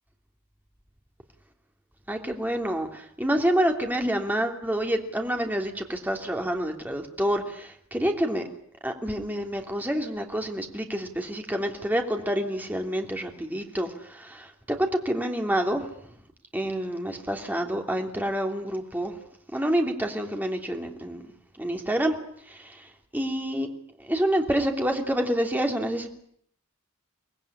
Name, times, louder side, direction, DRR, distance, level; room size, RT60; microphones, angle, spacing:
voice 1, 2.1-8.5 8.8-15.8 16.5-19.1 19.5-21.2 21.6-22.2 22.5-22.9 23.1-23.7 24.0-26.1, right 1 dB, 10° right, 3 dB, 3.1 m, -28 dB
25.0 x 19.5 x 10.0 m, 0.66 s
head